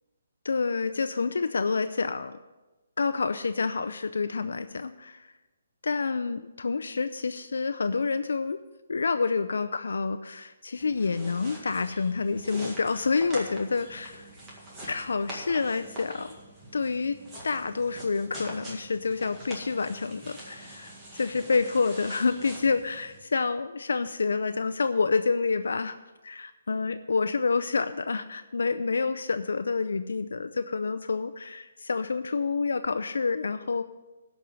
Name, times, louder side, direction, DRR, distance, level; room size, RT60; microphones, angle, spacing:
voice 1, 0.4-2.3 3.0-5.3 5.8-8.6 8.9-14.1 14.9-16.4 16.7-17.2 17.4-26.0 26.2-33.8, left 4 dB, 85° left, 10 dB, 0.5 m, -28 dB
sound 1, 10.8-23.2, right 1 dB, 15° right, 2.0 m, -44 dB
13.5 x 5.4 x 7.6 m, 1.1 s
hypercardioid pair, 165°, 0 cm